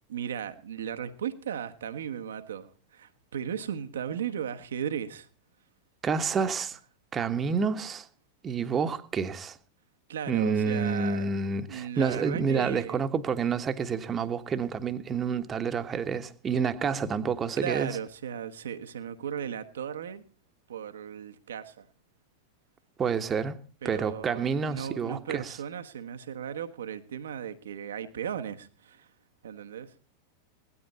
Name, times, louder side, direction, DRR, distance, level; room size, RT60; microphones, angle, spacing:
voice 1, 0.1-5.3 10.1-11.3 11.7-13.0 17.6-20.2 20.7-21.9 23.8-29.1 29.4-29.9, right 8 dB, 65° right, 9 dB, 1.3 m, -36 dB
voice 2, 6.0-6.8 7.1-8.0 8.4-9.6 10.3-18.0 23.0-23.6 23.8-25.6, right 5 dB, 20° right, 10 dB, 1.3 m, -29 dB
17.5 x 12.5 x 4.1 m, 0.40 s
figure-of-eight pair, 90°, 0 cm